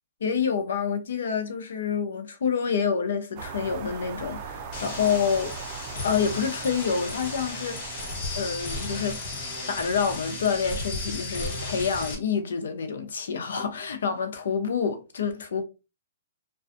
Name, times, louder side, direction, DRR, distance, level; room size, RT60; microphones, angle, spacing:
voice 1, 0.2-5.6 6.0-8.0 8.3-9.2 9.7-15.6, left 6 dB, 80° left, 0.6 m, -27 dB
sound 1, 3.4-10.3, right 6 dB, 35° right, 0.5 m, -41 dB
sound 2, 4.7-12.1, left 2 dB, 40° left, 1.1 m, -34 dB
2.5 x 2.3 x 2.5 m
hypercardioid pair, 150°, 0 cm